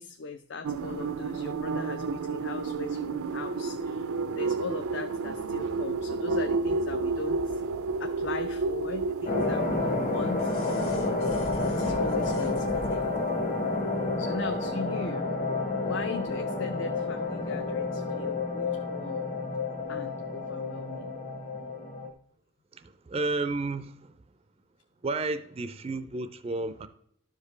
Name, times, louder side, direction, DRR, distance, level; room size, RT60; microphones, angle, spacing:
voice 1, 0.0-7.6 8.0-10.5 11.0-11.4 11.7-13.1 14.0-15.3 15.8-19.3 19.9-21.1, left 3 dB, 55° left, 0.5 m, -39 dB
sound 1, 0.6-13.0, right 4 dB, 85° right, 0.5 m, -32 dB
sound 2, 9.3-22.1, left 3 dB, 35° left, 0.9 m, -30 dB
sound 3, 9.5-13.3 14.6-14.7, left 1 dB, 85° left, 2.0 m, -43 dB
voice 2, 22.7-24.2 25.0-26.9, right 3 dB, 30° right, 0.4 m, -32 dB
12.5 x 5.0 x 3.2 m
head